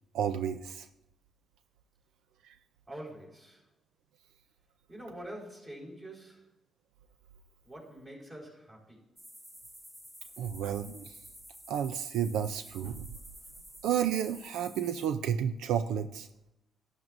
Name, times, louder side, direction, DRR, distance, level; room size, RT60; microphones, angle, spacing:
voice 1, 0.1-0.9 2.4-2.5 10.4-11.2 11.7-13.1 13.8-16.3, right 9 dB, 85° right, 0.4 m, -31 dB
voice 2, 2.9-3.7 4.9-6.5 7.6-9.1, right 1 dB, 25° right, 4.3 m, -46 dB
sound 1, 9.2-15.1, equal, 10° right, 0.8 m, -51 dB
12.0 x 11.0 x 2.6 m
cardioid pair, 95°, 0 cm